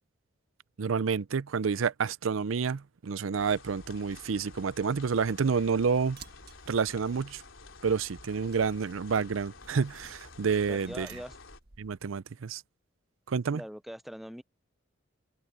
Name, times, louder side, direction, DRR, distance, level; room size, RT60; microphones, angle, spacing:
voice 1, 0.8-6.2 6.7-7.4 7.8-11.1 11.8-12.6 13.3-13.6, right 5 dB, 85° right, 0.5 m, -29 dB
sound 1, 3.4-11.6, left 3 dB, 75° left, 3.4 m, -51 dB
sound 2, 6.0-12.1, right 5 dB, 50° right, 1.4 m, -56 dB
voice 2, 10.7-11.4 13.5-14.4, equal, ahead, 0.5 m, -42 dB
head